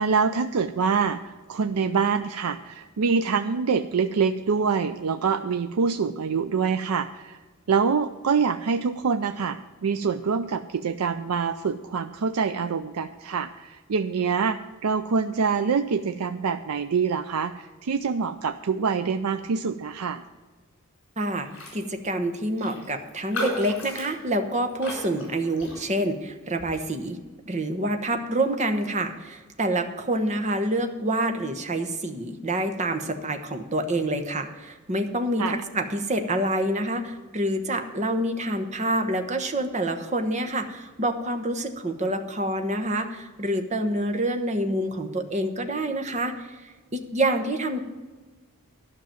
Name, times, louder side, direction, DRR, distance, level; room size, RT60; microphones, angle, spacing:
voice 1, 0.0-7.4 7.7-20.2 35.4-35.6, right 5 dB, 85° right, 9 dB, 0.5 m, -25 dB
voice 2, 21.2-27.2 27.4-47.8, right 1 dB, 30° right, 6 dB, 1.0 m, -27 dB
Raindrop, 21.5-21.8 22.1-22.2 22.6-26.1 26.6-26.9, left 1 dB, 55° left, 4.4 m, -35 dB
12.0 x 5.9 x 9.0 m, 1.3 s
head